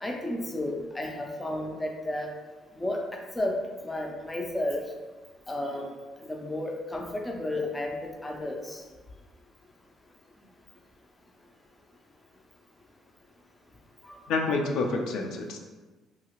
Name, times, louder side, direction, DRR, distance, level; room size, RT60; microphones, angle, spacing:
voice 1, 0.0-2.3 2.8-4.8 5.5-5.9 6.3-8.8 14.1-14.3, left 1 dB, 15° left, 1 dB, 0.4 m, -32 dB
voice 2, 14.3-15.6, left 3 dB, 80° left, 2 dB, 0.4 m, -28 dB
2.8 x 2.3 x 2.9 m, 1.2 s
cardioid pair, 120°, 0 cm